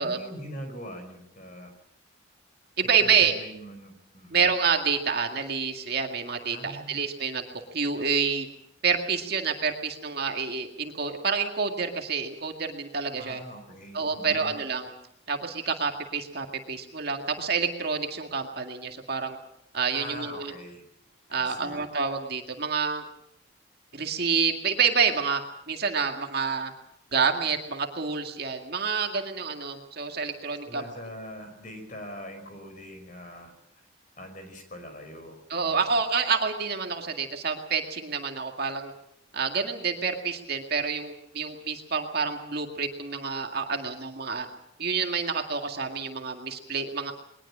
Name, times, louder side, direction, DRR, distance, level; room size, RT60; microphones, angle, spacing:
voice 1, 0.0-1.7 2.8-4.4 6.5-7.0 13.1-14.6 19.9-20.8 21.3-21.8 30.7-33.5 34.2-36.0, equal, 40° left, 6 dB, 5.1 m, -42 dB
voice 2, 2.8-3.3 4.3-8.5 8.8-13.4 13.9-14.9 15.3-19.4 19.7-20.5 21.3-23.1 23.9-25.4 25.7-26.7 27.1-30.8 35.5-38.9 39.3-44.5 44.8-47.1, right 5 dB, 50° right, 4 dB, 2.0 m, -28 dB
21.5 x 20.0 x 7.4 m, 0.78 s
head